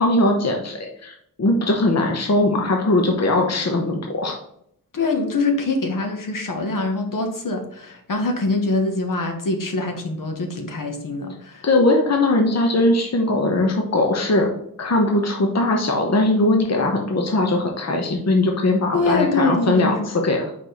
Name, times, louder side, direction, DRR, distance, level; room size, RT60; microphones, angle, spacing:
voice 1, 0.0-4.4 11.6-14.5 14.8-20.5, left 2 dB, 50° left, 2 dB, 1.1 m, -20 dB
voice 2, 4.9-11.6 18.9-20.1, left 2 dB, 65° left, 4 dB, 1.3 m, -24 dB
4.9 x 4.4 x 5.4 m, 0.71 s
wide cardioid pair, 90°, 35 cm